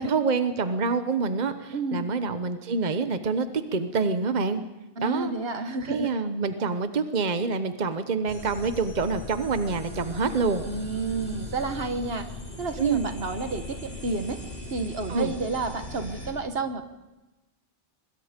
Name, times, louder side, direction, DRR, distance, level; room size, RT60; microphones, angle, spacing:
voice 1, 0.0-4.6 5.0-5.3 5.9-10.6 12.8-13.1 15.1-15.3, right 4 dB, 45° right, 9 dB, 1.1 m, -26 dB
voice 2, 1.7-2.1 5.0-6.1 10.6-12.3 12.6-14.4 14.7-16.8, right 3 dB, 70° right, 8 dB, 1.7 m, -30 dB
sound 1, 8.3-16.3, left 2 dB, 50° left, 6.4 m, -39 dB
24.0 x 21.5 x 5.2 m, 1.1 s
omnidirectional pair, 1.1 m